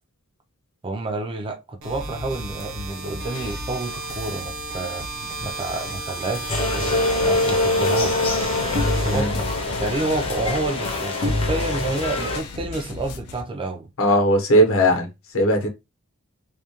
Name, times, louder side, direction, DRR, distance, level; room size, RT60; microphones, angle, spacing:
voice 1, 0.8-5.1 5.4-8.3 9.0-13.9, right 2 dB, 25° right, 0.3 m, -29 dB
sound 1, 1.8-13.4, left 3 dB, 90° left, 0.4 m, -38 dB
sound 2, 1.8-9.8, right 3 dB, 75° right, 0.8 m, -34 dB
sound 3, 6.5-12.4, left 2 dB, 25° left, 0.6 m, -23 dB
voice 2, 14.0-15.1 15.3-15.7, equal, 65° left, 0.8 m, -18 dB
2.4 x 2.2 x 2.8 m
head